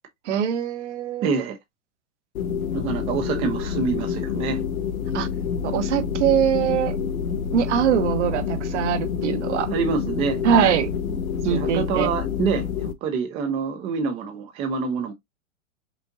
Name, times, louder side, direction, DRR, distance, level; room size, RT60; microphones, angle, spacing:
voice 1, 0.3-1.3 5.1-5.3 5.6-7.0 7.5-9.7 10.4-10.9 11.4-12.1, right 9 dB, 55° right, 0.9 m, -22 dB
voice 2, 1.2-1.6 2.7-4.6 9.7-10.8 11.1-11.2 11.5-15.1, right 5 dB, 15° right, 0.4 m, -26 dB
sound 1, 2.3-12.9, left 7 dB, 85° left, 0.7 m, -27 dB
5.2 x 2.7 x 2.5 m
hypercardioid pair, 135°, 41 cm